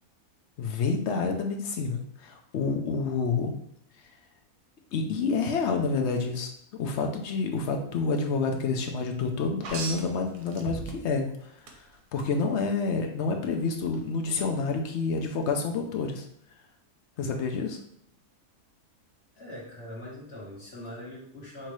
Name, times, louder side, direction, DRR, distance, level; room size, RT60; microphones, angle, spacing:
voice 1, 0.6-3.5 4.9-11.9 12.1-16.2 17.2-17.8, left 4 dB, 60° left, 3 dB, 0.7 m, -28 dB
sound 1, 9.6-11.2 11.7-12.3 13.9-14.0, right 4 dB, 90° right, 1.3 m, -37 dB
voice 2, 19.3-21.7, left 1 dB, 45° left, -4 dB, 1.4 m, -42 dB
5.9 x 2.8 x 3.1 m, 0.70 s
omnidirectional pair, 1.6 m